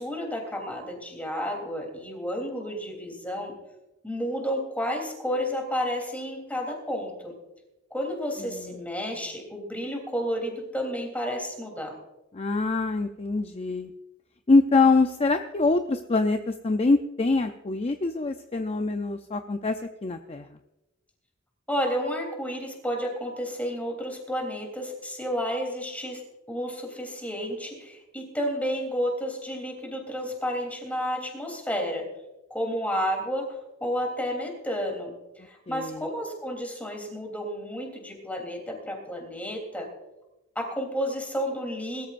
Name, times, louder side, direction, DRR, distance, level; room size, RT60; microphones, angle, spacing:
voice 1, 0.0-3.5 4.0-7.3 7.9-12.0 21.7-26.2 26.5-32.1 32.5-39.9 40.5-42.1, equal, 10° left, 2 dB, 3.3 m, -31 dB
voice 2, 12.3-13.9 14.5-20.5 35.7-36.1, left 3 dB, 30° left, 7 dB, 0.5 m, -24 dB
21.5 x 13.5 x 2.6 m, 0.98 s
head